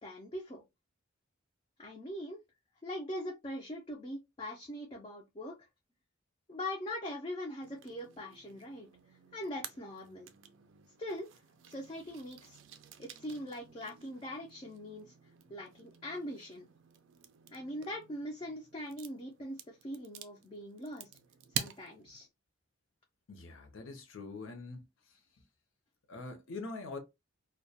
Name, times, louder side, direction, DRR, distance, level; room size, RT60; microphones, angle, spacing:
voice 1, 0.0-0.6 1.8-2.4 2.8-5.5 6.5-10.3 11.0-11.4 11.7-12.6 13.0-15.1 15.5-16.6 17.5-21.1 21.5-22.3, left 1 dB, 25° left, 0.4 m, -42 dB
sound 1, 7.6-22.3, right 9 dB, 65° right, 0.3 m, -48 dB
voice 2, 23.3-25.2 26.1-27.0, left 3 dB, 70° left, 0.6 m, -44 dB
2.2 x 2.1 x 2.7 m
head